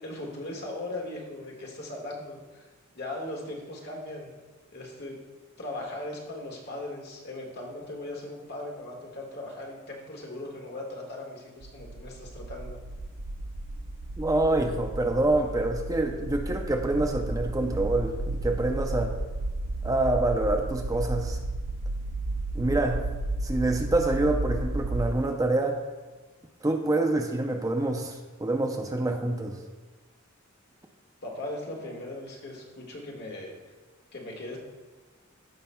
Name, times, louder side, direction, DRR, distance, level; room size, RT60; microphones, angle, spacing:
voice 1, 0.0-2.6 3.0-4.3 4.7-5.2 5.6-12.8 31.2-33.5 34.1-34.6, left 1 dB, 55° left, -1 dB, 1.6 m, -38 dB
sound 1, 11.6-25.1, right 2 dB, 65° right, 0.6 m, -33 dB
voice 2, 14.2-19.1 19.8-21.4 22.5-23.0 23.4-25.8 26.6-29.6, right 2 dB, 15° right, 3 dB, 0.5 m, -26 dB
14.5 x 5.7 x 2.3 m, 1.2 s
head